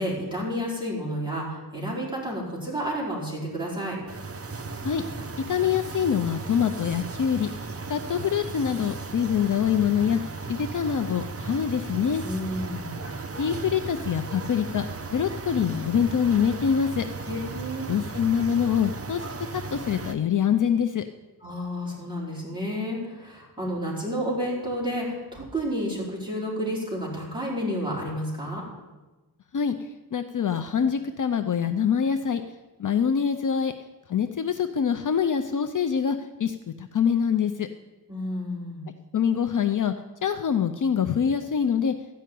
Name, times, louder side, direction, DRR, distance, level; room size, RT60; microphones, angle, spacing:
voice 1, 0.0-4.0 12.2-13.0 17.3-17.9 21.4-28.6 38.1-38.8, equal, 10° right, -5 dB, 4.4 m, -30 dB
sound 1, 4.1-20.1, right 3 dB, 35° right, 0.8 m, -36 dB
voice 2, 5.4-7.5 7.9-10.2 10.5-12.2 13.4-14.9 15.1-17.1 17.9-21.0 29.5-32.4 32.8-33.7 34.1-37.7 39.1-39.9 40.2-41.9, left 7 dB, 50° left, 8 dB, 0.6 m, -25 dB
13.5 x 5.6 x 9.2 m, 1.2 s
wide cardioid pair, 120°, 39 cm